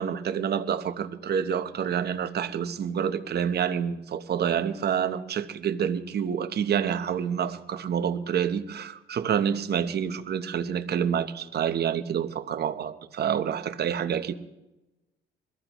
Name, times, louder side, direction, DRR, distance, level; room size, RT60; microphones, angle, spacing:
voice 1, 0.0-14.3, right 8 dB, 55° right, 9 dB, 0.9 m, -28 dB
22.0 x 14.5 x 3.0 m, 0.98 s
cardioid pair, 90°, 20 cm